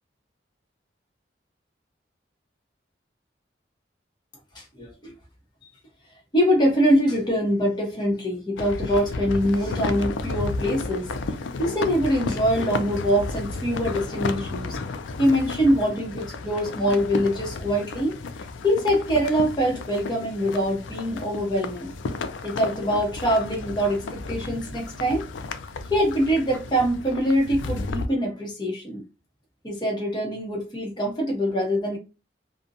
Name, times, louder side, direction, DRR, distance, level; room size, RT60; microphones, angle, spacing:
voice 1, 4.5-5.1 6.3-11.1 11.6-14.8 15.2-18.2 18.6-21.9 22.4-25.2 25.9-29.0 29.6-32.0, equal, 25° left, 0.7 m, -24 dB
sound 1, 8.6-28.1, left 3 dB, 90° left, 0.4 m, -33 dB
2.5 x 2.1 x 2.6 m
head